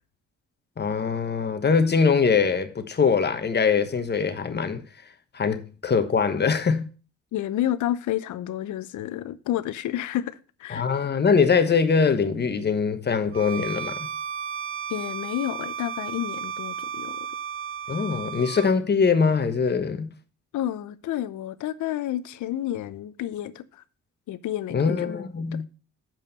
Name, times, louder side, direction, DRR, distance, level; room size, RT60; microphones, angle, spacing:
voice 1, 0.8-4.8 5.3-6.9 10.7-14.0 17.9-20.1 24.7-25.6, left 5 dB, 35° left, 1.2 m, -22 dB
voice 2, 7.3-10.9 14.9-17.3 20.5-23.8 24.3-25.1 25.5-25.6, left 12 dB, 75° left, 0.7 m, -30 dB
Bowed string instrument, 13.3-18.7, right 7 dB, 45° right, 0.6 m, -34 dB
7.4 x 5.4 x 6.7 m
cardioid pair, 90°, 30 cm